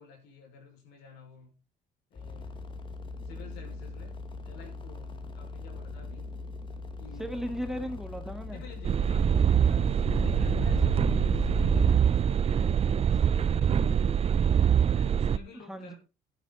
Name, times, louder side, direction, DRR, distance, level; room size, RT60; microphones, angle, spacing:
voice 1, 0.0-1.6 2.1-2.6 3.2-6.3 7.0-7.5 8.5-14.4 14.9-16.0, left 5 dB, 85° left, 5.7 m, -51 dB
sound 1, 2.2-11.9, left 5 dB, 30° left, 2.0 m, -38 dB
voice 2, 7.2-8.6 15.7-15.9, equal, 5° right, 1.8 m, -36 dB
sound 2, 8.8-15.4, right 8 dB, 35° right, 0.6 m, -24 dB
12.5 x 10.5 x 4.2 m
cardioid pair, 110°, 17 cm